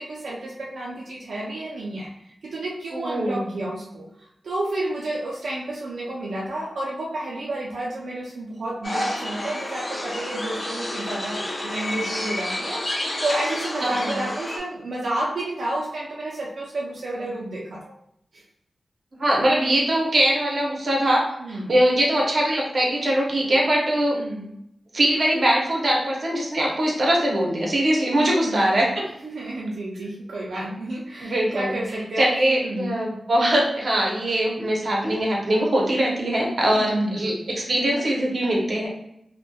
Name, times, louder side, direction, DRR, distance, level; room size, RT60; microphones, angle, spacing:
voice 1, 0.0-2.1 2.4-4.0 4.4-17.8 18.3-18.4 21.4-21.7 24.1-24.5 28.4-28.7 29.2-32.3 32.6-32.9 36.6-37.2, right 1 dB, 85° right, -4 dB, 0.4 m, -30 dB
voice 2, 2.9-3.6 13.8-14.2 19.2-24.2 24.9-29.1 31.2-31.8 32.2-38.9, right 1 dB, 50° right, -3 dB, 0.7 m, -22 dB
sound 1, 8.8-14.6, left 1 dB, 35° left, 0.5 m, -30 dB
2.6 x 2.1 x 2.2 m, 0.77 s
wide cardioid pair, 120°, 0 cm